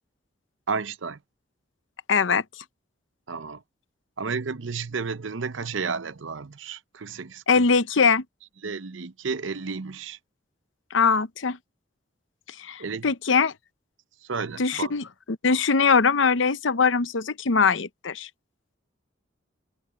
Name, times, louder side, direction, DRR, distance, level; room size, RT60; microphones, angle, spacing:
voice 1, 0.7-1.2 3.3-3.6 4.2-7.7 8.6-10.2 12.8-13.1 14.2-14.9, right 5 dB, 80° right, 0.7 m, -32 dB
voice 2, 2.1-2.4 7.5-8.2 10.9-11.6 12.6-13.5 14.6-15.0 15.4-18.3, left 5 dB, 75° left, 0.8 m, -21 dB
head